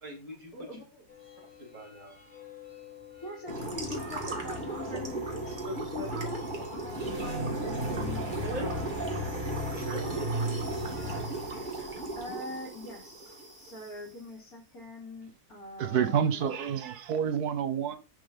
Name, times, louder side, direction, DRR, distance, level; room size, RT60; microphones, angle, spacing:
voice 1, 0.0-0.8 1.6-2.1 4.9-5.0 5.6-6.2 8.4-8.7 9.7-10.6, equal, 55° right, 3.3 m, -41 dB
voice 2, 0.5-1.0 3.2-6.4 6.7-8.9 12.2-16.5, left 2 dB, 70° left, 3.4 m, -43 dB
sound 1, 1.1-11.2, left 7 dB, 45° left, 2.5 m, -50 dB
sound 2, 3.5-13.9, right 2 dB, 30° right, 2.0 m, -34 dB
voice 3, 15.8-18.0, right 8 dB, 85° right, 1.5 m, -28 dB
10.0 x 3.9 x 5.3 m
omnidirectional pair, 1.6 m